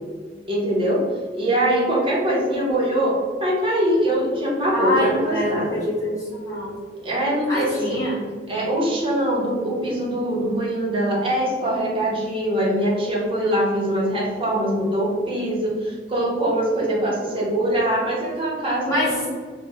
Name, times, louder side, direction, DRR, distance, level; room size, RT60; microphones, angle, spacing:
voice 1, 0.5-1.0 1.3-3.1 3.4-5.8 7.0-8.0 8.5-19.3, right 1 dB, 30° right, -4 dB, 0.9 m, -23 dB
voice 2, 4.7-6.8 7.5-8.2 18.9-19.4, equal, 20° left, -9 dB, 1.4 m, -25 dB
3.1 x 2.3 x 3.5 m, 1.5 s
head